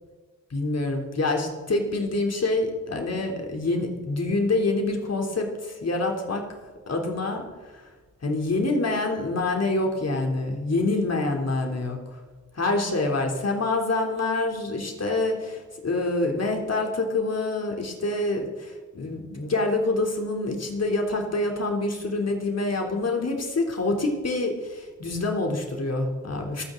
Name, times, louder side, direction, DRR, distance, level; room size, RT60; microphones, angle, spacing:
voice 1, 0.5-6.4 6.9-7.5 8.2-12.0 12.5-26.6, left 2 dB, 50° left, 2 dB, 3.4 m, -26 dB
27.0 x 9.3 x 3.9 m, 1.3 s
supercardioid pair, 45°, 32 cm